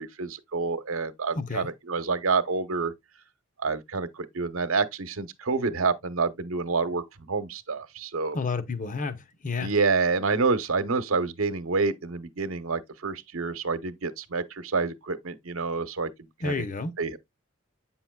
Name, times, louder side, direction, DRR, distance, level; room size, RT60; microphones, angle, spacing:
voice 1, 0.0-2.9 3.6-8.4 9.6-16.1 16.4-16.7 17.0-17.2, right 4 dB, 70° right, 0.9 m, -28 dB
voice 2, 1.4-1.7 8.3-9.7 16.4-16.9, left 4 dB, 40° left, 0.8 m, -30 dB
8.4 x 5.9 x 2.3 m
head